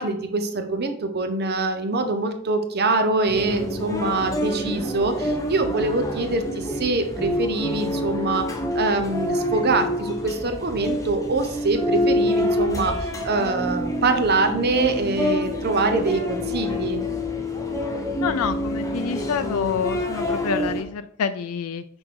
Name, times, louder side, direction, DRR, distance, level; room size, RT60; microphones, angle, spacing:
voice 1, 0.0-8.5 8.7-17.0, right 3 dB, 50° right, 7 dB, 0.8 m, -24 dB
sound 1, 3.3-20.8, left 1 dB, 15° left, 1.0 m, -27 dB
voice 2, 18.2-21.8, left 7 dB, 85° left, 10 dB, 0.4 m, -27 dB
6.2 x 4.8 x 4.6 m, 0.69 s
head